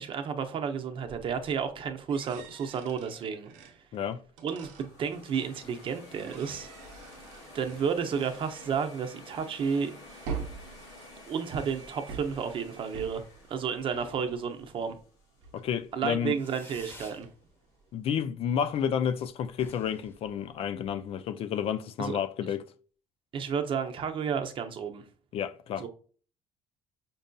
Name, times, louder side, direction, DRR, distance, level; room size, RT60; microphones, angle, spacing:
voice 1, 0.0-3.7 4.4-6.7 7.5-9.9 11.3-13.2 13.5-15.0 15.9-17.3 22.0-22.2 23.3-25.0 25.8-25.9, right 6 dB, 45° right, 0.7 m, -32 dB
sound 1, 1.0-5.9 6.2-16.3 16.6-17.9, right 6 dB, 90° right, 0.7 m, -46 dB
sound 2, 4.6-15.7, left 2 dB, 85° left, 1.2 m, -51 dB
voice 2, 15.5-16.4 17.9-22.7 25.3-25.9, left 8 dB, 55° left, 0.4 m, -30 dB
Fireworks, 16.3-17.3 17.6-18.2 18.4-18.5 18.8-18.9 19.1-19.2 19.5-21.1, left 1 dB, 20° left, 1.0 m, -51 dB
5.3 x 2.6 x 2.2 m
cardioid pair, 110°, 12 cm